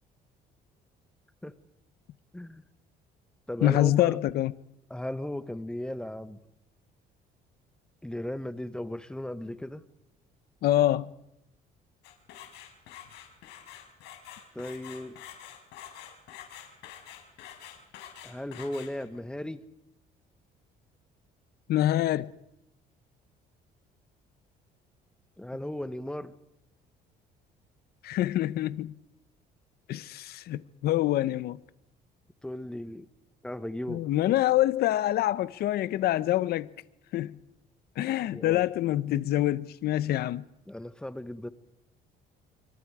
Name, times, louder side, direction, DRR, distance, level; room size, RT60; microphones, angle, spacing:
voice 1, 2.3-2.6 3.5-4.2 4.9-6.4 8.0-9.8 14.5-15.2 18.2-19.6 25.4-26.4 32.4-33.0 33.4-34.0 38.3-38.7 40.7-41.5, left 1 dB, 5° left, 1.3 m, -36 dB
voice 2, 3.6-4.5 10.6-11.1 21.7-22.3 28.0-29.0 29.9-31.6 33.9-36.7 37.1-37.4 38.0-40.4, left 14 dB, 70° left, 0.8 m, -26 dB
sound 1, 12.0-19.2, left 10 dB, 85° left, 5.3 m, -47 dB
27.0 x 24.5 x 4.9 m
cardioid pair, 110°, 17 cm